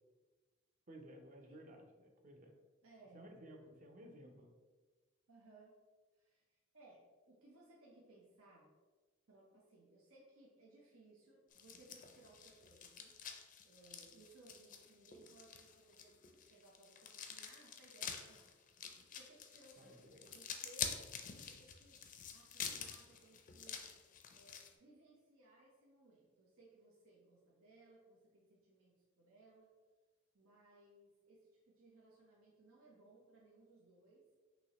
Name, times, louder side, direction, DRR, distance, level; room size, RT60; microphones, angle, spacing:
voice 1, 0.9-2.5 3.1-4.5 19.8-20.2, right 1 dB, 40° right, 3 dB, 0.6 m, -56 dB
voice 2, 2.8-3.2 5.3-5.7 6.1-8.7 9.3-13.1 13.6-18.5 19.1-21.0 21.5-23.9 24.3-29.7 30.3-34.2, right 2 dB, 85° right, -4 dB, 0.8 m, -64 dB
sound 1, 11.5-24.7, left 7 dB, 40° left, 0.4 m, -48 dB
6.0 x 2.8 x 3.0 m, 1.3 s
head